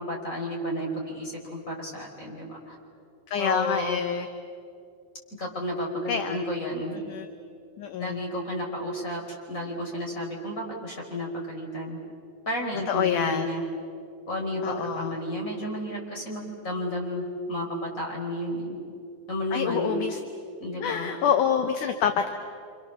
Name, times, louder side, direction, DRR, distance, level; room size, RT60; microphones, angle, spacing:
voice 1, 0.0-2.8 3.4-4.0 5.4-6.9 8.0-9.2 9.5-12.0 12.4-13.6 14.3-18.7 19.3-20.0 20.6-21.1, equal, 20° left, -1 dB, 5.1 m, -32 dB
voice 2, 3.3-4.3 6.1-6.4 7.1-7.3 7.8-8.1 12.9-13.5 14.6-15.1 19.5-20.2 20.8-22.3, left 8 dB, 70° left, 6 dB, 2.1 m, -26 dB
29.0 x 27.5 x 7.0 m, 2.4 s
omnidirectional pair, 4.6 m